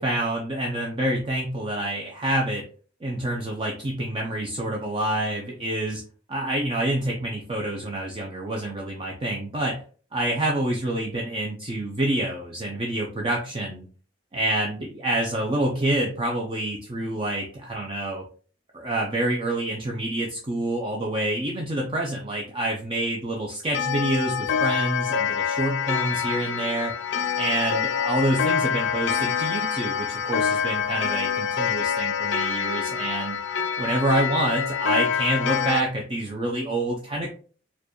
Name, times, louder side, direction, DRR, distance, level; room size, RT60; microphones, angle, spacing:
voice 1, 0.0-2.6 3.0-6.0 6.3-9.8 10.1-13.9 14.3-18.2 18.7-26.9 27.4-33.4 33.8-37.3, right 1 dB, 30° right, -1 dB, 0.5 m, -27 dB
Clock, 23.7-35.8, left 7 dB, 90° left, 0.4 m, -26 dB
4.5 x 2.3 x 3.0 m, 0.41 s
head